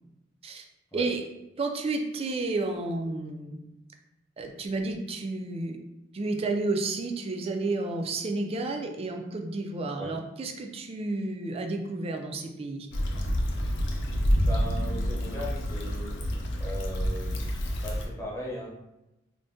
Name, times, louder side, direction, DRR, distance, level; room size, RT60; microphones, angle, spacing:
voice 1, 1.6-3.6 4.4-5.8 6.1-12.9, right 3 dB, 30° right, 4 dB, 0.3 m, -31 dB
Stream / Traffic noise roadway noise / Trickle dribble, 12.9-18.1, equal, 65° left, 0.5 m, -28 dB
voice 2, 14.4-16.1 16.6-17.5 17.8-18.7, equal, 15° left, -5 dB, 0.8 m, -37 dB
2.6 x 2.1 x 3.5 m, 0.93 s
head